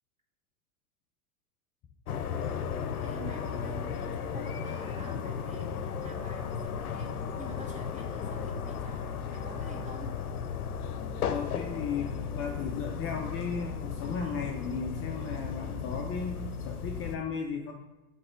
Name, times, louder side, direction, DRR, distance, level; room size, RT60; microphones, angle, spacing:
sound 1, 2.1-17.2, left 6 dB, 90° left, 0.7 m, -35 dB
voice 1, 3.0-7.1 7.4-10.1, right 1 dB, 15° right, -1 dB, 2.0 m, -47 dB
voice 2, 11.3-17.7, left 5 dB, 30° left, 2 dB, 0.7 m, -35 dB
7.7 x 3.4 x 5.7 m, 1.1 s
hypercardioid pair, 110°, 43 cm